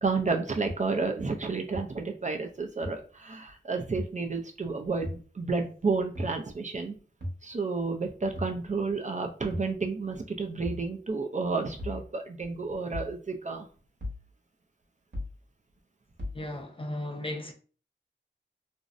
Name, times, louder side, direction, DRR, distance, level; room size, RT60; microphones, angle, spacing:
voice 1, 0.0-5.1 5.3-7.0 7.4-13.7, right 4 dB, 40° right, 0.4 m, -31 dB
sound 1, 0.7-0.8 1.7-1.8 2.8-2.9 4.0-4.1 5.0-5.2 6.2-6.4 7.2-7.4 8.4-8.6 9.5-9.7 10.6-10.9 11.8-12.0 12.9-13.1 14.0-14.2 15.1-15.4 16.2-16.4, left 1 dB, 60° right, 0.9 m, -36 dB
voice 2, 16.3-17.5, left 1 dB, 30° left, 0.5 m, -35 dB
2.5 x 2.0 x 2.4 m
wide cardioid pair, 55°, 20 cm